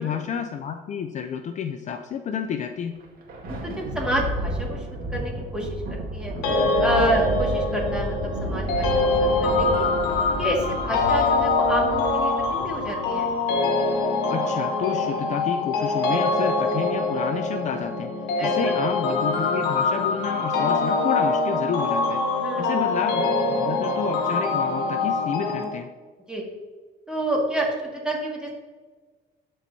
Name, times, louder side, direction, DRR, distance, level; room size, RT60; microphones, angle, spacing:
voice 1, 0.0-3.0 14.3-22.2 22.6-25.9, left 7 dB, 45° left, 7 dB, 0.5 m, -30 dB
Thunder, 2.9-13.6, right 1 dB, 60° right, 1.9 m, -32 dB
voice 2, 3.6-6.3 6.8-9.8 10.4-13.3 18.4-18.8 22.4-22.9 26.3-26.4 27.1-28.5, right 1 dB, 5° right, -2 dB, 2.0 m, -29 dB
sound 1, 6.4-25.6, left 3 dB, 85° left, 1.4 m, -24 dB
12.0 x 4.5 x 2.7 m, 1.4 s
cardioid pair, 110°, 17 cm